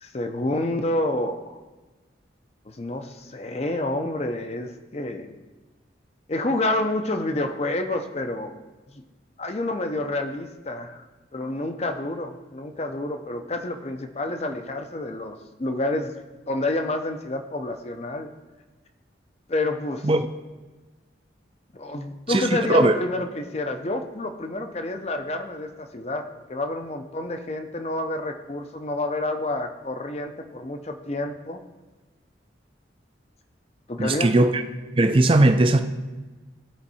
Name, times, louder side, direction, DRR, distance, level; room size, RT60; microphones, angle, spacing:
voice 1, 0.0-1.6 2.7-5.4 6.3-8.6 8.9-9.0 9.4-11.1 11.3-16.1 16.5-18.3 19.5-20.1 21.7-31.6 33.9-34.3, left 2 dB, 35° left, 0.5 m, -29 dB
voice 2, 34.0-34.6 34.9-35.8, right 2 dB, 30° right, 0.4 m, -18 dB
13.5 x 4.5 x 4.2 m
head